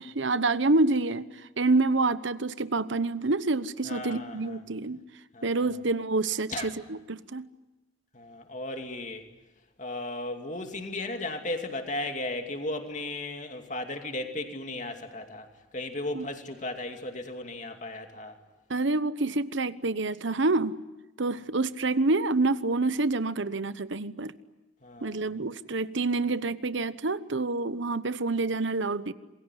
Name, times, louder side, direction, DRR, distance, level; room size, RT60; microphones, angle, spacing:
voice 1, 0.0-5.0 5.4-7.5 16.1-16.3 18.7-20.8 21.2-24.3 25.0-29.1, right 3 dB, 75° right, 1.0 m, -27 dB
voice 2, 3.9-4.6 5.3-5.7 6.5-6.7 8.1-9.2 9.8-15.5 15.7-18.4 24.8-25.3, left 2 dB, 40° left, 2.6 m, -35 dB
27.5 x 21.5 x 9.9 m
head